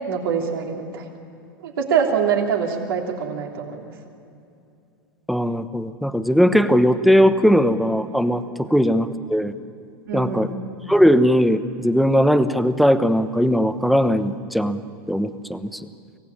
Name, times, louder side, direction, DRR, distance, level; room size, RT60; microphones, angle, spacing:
voice 1, 0.1-1.1 1.6-3.9 10.1-10.5, right 7 dB, 80° right, 1 dB, 3.2 m, -24 dB
voice 2, 5.3-9.5 10.1-10.5 10.9-14.8 15.1-15.8, equal, ahead, 10 dB, 1.0 m, -19 dB
24.5 x 16.5 x 9.9 m, 2.6 s
hypercardioid pair, 110°, 12 cm